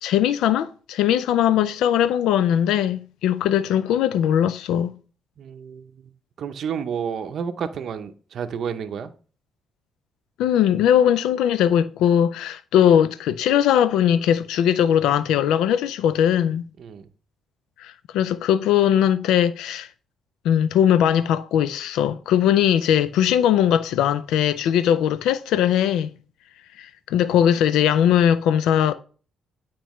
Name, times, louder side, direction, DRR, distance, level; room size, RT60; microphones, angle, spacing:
voice 1, 0.0-4.9 10.4-16.6 17.8-19.9 20.4-26.1 26.8-28.9, left 10 dB, 90° left, 0.3 m, -20 dB
voice 2, 5.4-6.1 6.4-9.1 16.8-17.1, right 7 dB, 65° right, 0.6 m, -31 dB
9.1 x 4.4 x 3.1 m
cardioid pair, 90°, 0 cm